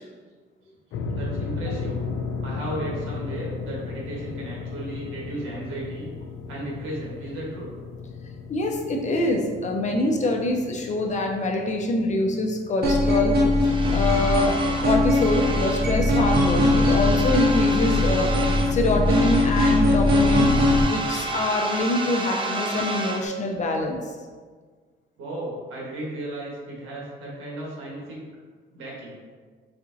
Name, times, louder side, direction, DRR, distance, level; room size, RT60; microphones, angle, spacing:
sound 1, 0.9-16.1, left 4 dB, 80° left, 0.4 m, -36 dB
voice 1, 1.1-2.1 2.4-6.1 6.5-7.7 25.2-28.2 28.7-29.2, right 1 dB, 85° right, -5 dB, 1.5 m, -35 dB
voice 2, 8.5-13.4 13.9-20.5 20.9-24.0, left 2 dB, 35° left, 2 dB, 0.7 m, -25 dB
sound 2, 12.8-20.8, left 2 dB, 50° right, 0.8 m, -21 dB
sound 3, 13.6-15.9 16.2-18.8 19.0-23.3, right 2 dB, 25° right, 0.5 m, -31 dB
4.2 x 3.5 x 2.7 m, 1.5 s
cardioid pair, 90°, 20 cm